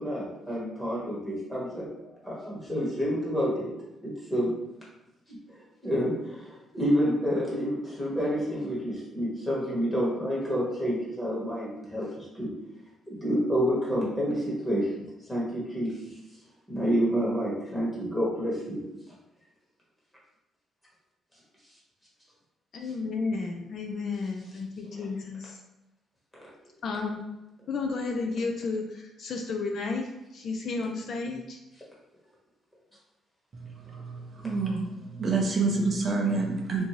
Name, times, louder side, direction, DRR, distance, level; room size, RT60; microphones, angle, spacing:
voice 1, 0.0-1.9 2.2-3.7 4.0-4.5 5.3-12.5 13.1-14.9 15.3-16.0 16.7-18.8, equal, 10° left, -6 dB, 1.2 m, -29 dB
voice 2, 22.7-25.6 26.8-27.2 27.7-31.6, left 4 dB, 50° left, 2 dB, 0.3 m, -32 dB
voice 3, 33.5-34.9 35.1-36.8, right 3 dB, 35° right, -1 dB, 0.5 m, -28 dB
3.6 x 2.6 x 3.0 m, 0.91 s
cardioid pair, 150°, 0 cm